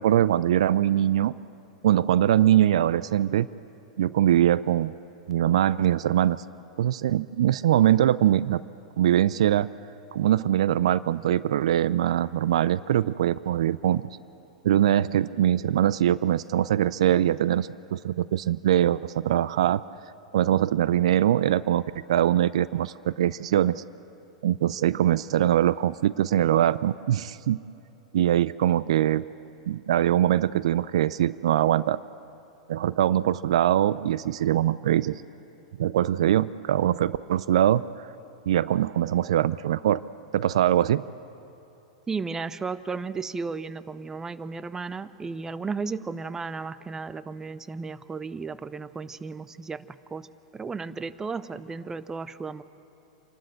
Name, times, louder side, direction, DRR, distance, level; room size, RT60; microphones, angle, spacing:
voice 1, 0.0-1.3 1.8-3.5 4.0-4.9 5.3-6.4 6.8-8.6 9.0-9.7 10.1-14.1 14.6-19.8 20.3-21.8 22.1-23.8 24.4-27.6 28.1-29.3 29.7-32.0 32.7-35.2 35.8-37.8 38.5-40.0 40.3-41.0, right 11 dB, 65° right, 18 dB, 0.4 m, -22 dB
voice 2, 42.1-50.3 50.5-52.6, right 4 dB, 15° right, 15 dB, 0.6 m, -34 dB
27.0 x 12.5 x 7.8 m, 2.8 s
hypercardioid pair, 100°, 4 cm